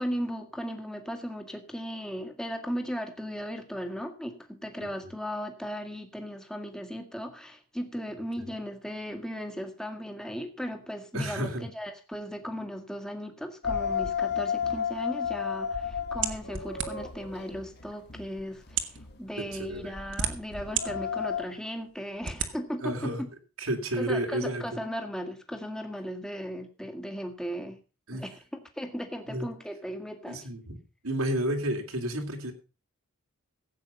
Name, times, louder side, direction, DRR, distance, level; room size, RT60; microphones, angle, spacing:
voice 1, 0.0-23.1 24.0-27.8 28.1-30.4, equal, 5° left, 5 dB, 1.8 m, -37 dB
voice 2, 11.1-11.7 19.4-19.9 22.8-23.3 23.6-24.8 28.1-28.2 29.3-29.5 30.3-30.8 31.0-32.5, right 1 dB, 85° right, 2 dB, 3.1 m, -31 dB
sound 1, 13.6-21.4, left 7 dB, 50° left, 1.5 m, -33 dB
sound 2, 16.2-17.2 18.0-18.1 18.7-19.0 19.8-20.9 21.4-21.5 22.2-22.5, right 8 dB, 60° right, 1.7 m, -31 dB
16.0 x 8.5 x 5.3 m, 0.33 s
head